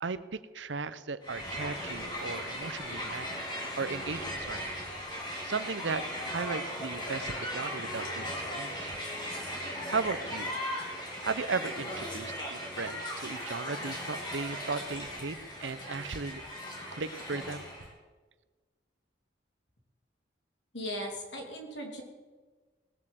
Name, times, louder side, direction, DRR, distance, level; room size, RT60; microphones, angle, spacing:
voice 1, 0.0-3.5 3.8-4.7 5.4-9.0 9.9-10.6 11.2-16.4 16.9-17.7, right 4 dB, 85° right, 14 dB, 0.8 m, -36 dB
Crowd, 1.2-17.9, equal, 25° left, 3.2 m, -38 dB
voice 2, 20.7-22.0, equal, 80° left, 2 dB, 3.2 m, -38 dB
18.5 x 7.7 x 7.7 m, 1.3 s
head